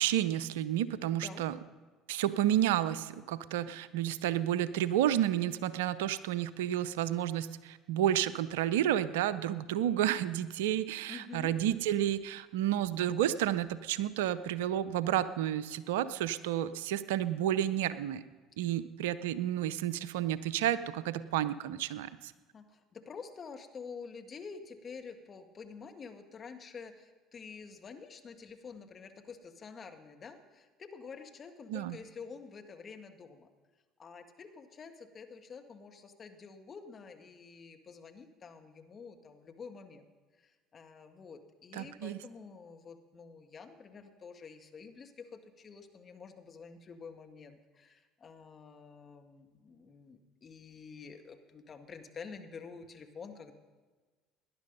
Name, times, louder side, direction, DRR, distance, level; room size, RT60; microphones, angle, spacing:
voice 1, 0.0-1.6 2.1-18.2 18.6-22.3 31.7-32.0 41.7-42.2, right 11 dB, 80° right, 15 dB, 0.6 m, -31 dB
voice 2, 1.1-1.5 11.1-11.6 18.6-18.7 22.5-33.5 34.0-40.0 40.4-53.5, left 5 dB, 40° left, 5 dB, 1.7 m, -48 dB
18.5 x 10.5 x 5.4 m, 1.4 s
hypercardioid pair, 65°, 0 cm